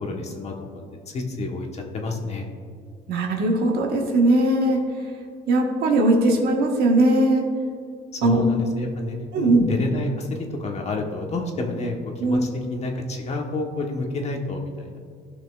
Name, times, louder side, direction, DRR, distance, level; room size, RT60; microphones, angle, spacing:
voice 1, 0.0-2.4 8.1-12.0 12.2-15.0, left 2 dB, 40° left, 2 dB, 1.2 m, -29 dB
voice 2, 3.1-4.8 5.5-7.5 8.2-8.4 9.3-9.7 12.2-12.4, right 2 dB, 70° right, 1 dB, 1.4 m, -19 dB
15.5 x 5.8 x 2.4 m, 2.1 s
cardioid pair, 110°, 17 cm